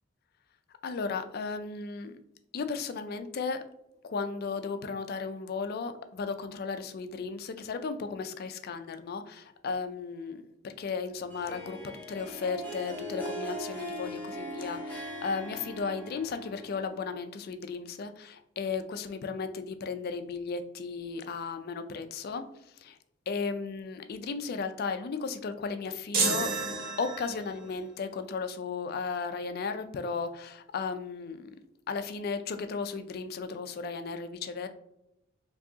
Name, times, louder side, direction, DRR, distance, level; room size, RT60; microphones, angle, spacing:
voice 1, 0.8-2.2 2.5-3.6 4.0-22.4 22.8-23.0 23.3-26.5 27.0-31.5 31.9-34.7, left 4 dB, 45° left, 9 dB, 0.3 m, -35 dB
Harp, 11.3-17.1, equal, 10° left, 0.7 m, -40 dB
sound 1, 26.1-27.6, right 4 dB, 45° right, 0.7 m, -30 dB
4.6 x 2.7 x 2.7 m, 0.82 s
head